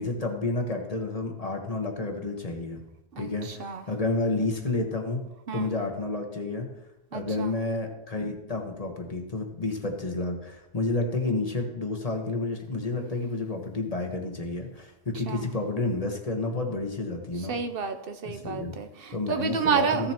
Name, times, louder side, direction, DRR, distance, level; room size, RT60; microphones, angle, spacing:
voice 1, 0.0-2.8 3.2-5.2 5.5-6.7 7.1-17.6 18.2-18.8 19.1-20.1, left 2 dB, 35° left, 3 dB, 1.2 m, -30 dB
voice 2, 3.1-3.8 5.5-5.7 7.1-7.6 15.3-15.5 17.4-20.1, right 6 dB, 65° right, 8 dB, 0.9 m, -30 dB
15.0 x 7.5 x 2.9 m, 0.93 s
omnidirectional pair, 1.1 m